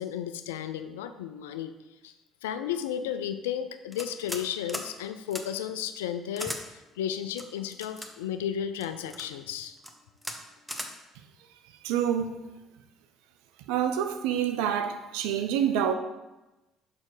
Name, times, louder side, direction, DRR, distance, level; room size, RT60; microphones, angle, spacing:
voice 1, 0.0-1.7 2.0-2.1 2.4-9.8, left 9 dB, 85° left, 0.3 m, -33 dB
sound 1, 3.9-4.4 4.7-4.9 5.3-5.4 6.4-6.6 7.4-8.1 8.8-9.3 9.8-9.9 10.2-10.4 10.7-10.9, equal, ahead, 1.0 m, -37 dB
voice 2, 11.8-12.4 13.7-15.9, right 9 dB, 75° right, 0.5 m, -27 dB
6.3 x 4.3 x 4.8 m
hypercardioid pair, 55°, 0 cm